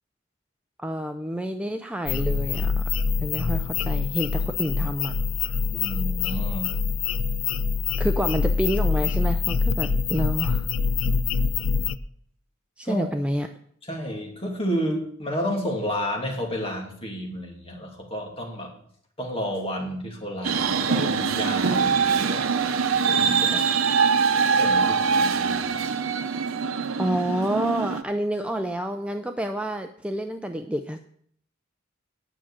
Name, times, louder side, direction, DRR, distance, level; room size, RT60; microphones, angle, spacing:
voice 1, 0.8-2.8 3.2-5.1 8.0-10.7 12.8-13.5 27.0-31.0, right 1 dB, 5° right, 6 dB, 0.5 m, -28 dB
sound 1, 2.1-12.0, left 5 dB, 75° left, 0.5 m, -25 dB
voice 2, 5.7-6.7 12.8-13.0 13.8-18.7 19.2-22.5 23.1-23.7 24.5-25.8, equal, 30° left, 0 dB, 2.7 m, -31 dB
sound 2, 20.4-28.0, right 5 dB, 85° right, 0.7 m, -23 dB
10.0 x 6.1 x 8.7 m, 0.64 s
head